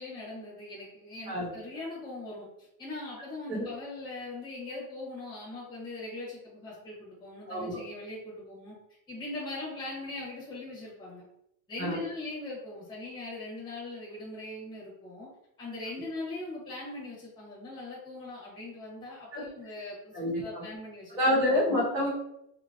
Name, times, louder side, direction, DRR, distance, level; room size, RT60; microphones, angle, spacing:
voice 1, 0.0-8.7 9.1-11.2 11.7-15.3 15.6-21.2, left 2 dB, 10° left, -6 dB, 0.9 m, -40 dB
voice 2, 7.5-7.8 11.8-12.0 19.3-19.4 20.1-20.6 21.1-22.1, left 1 dB, 10° right, -9 dB, 0.3 m, -27 dB
2.7 x 2.7 x 2.5 m, 0.80 s
supercardioid pair, 155°, 45 cm